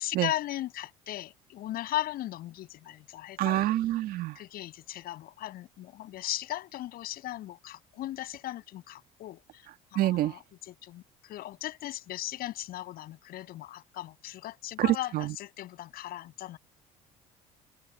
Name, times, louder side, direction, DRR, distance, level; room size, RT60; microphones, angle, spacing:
voice 1, 0.0-3.6 4.4-16.6, left 14 dB, 65° left, 6.8 m, -37 dB
voice 2, 3.4-4.4 10.0-10.3 14.8-15.3, right 15 dB, 65° right, 1.6 m, -26 dB
supercardioid pair, 70°, 17 cm